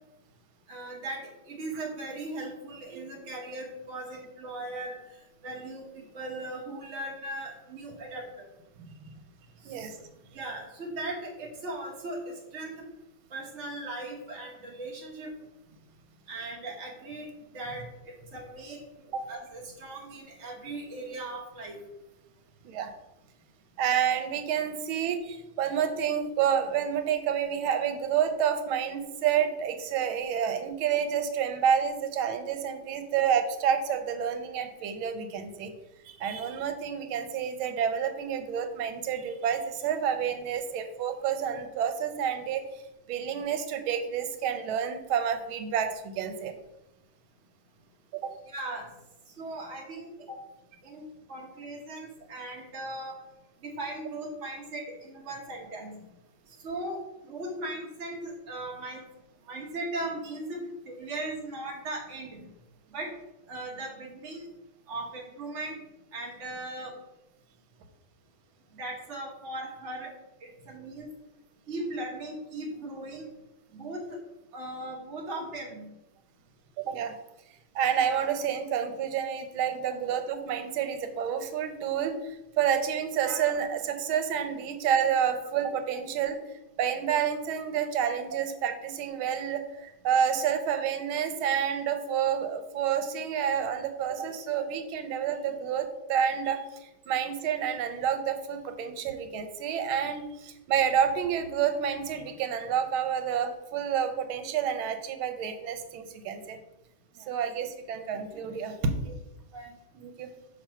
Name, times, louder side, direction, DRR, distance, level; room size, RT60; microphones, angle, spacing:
voice 1, 0.7-4.9 5.4-8.5 9.6-9.9 10.3-12.9 13.3-15.3 16.3-17.3 17.5-17.9 18.3-21.8 48.5-48.9 49.3-50.4 50.8-53.2 53.6-56.1 56.5-59.0 59.5-62.5 62.9-63.1 63.5-64.5 64.9-65.8 66.1-67.0 68.7-70.1 70.4-71.1 71.7-73.3 73.7-74.2 74.5-75.9 87.1-87.2 107.2-107.3 108.1-108.4 109.1-109.2 109.5-109.8, right 2 dB, 45° right, -1 dB, 1.0 m, -38 dB
voice 2, 9.6-10.0 19.1-19.2 22.6-22.9 23.8-35.7 36.0-42.8 43.1-46.5 48.1-48.4 76.8-77.1 77.7-86.4 86.8-106.6 107.3-108.7 109.9-110.3, right 8 dB, 85° right, 8 dB, 1.5 m, -29 dB
6.3 x 3.0 x 5.6 m, 0.93 s
omnidirectional pair, 2.2 m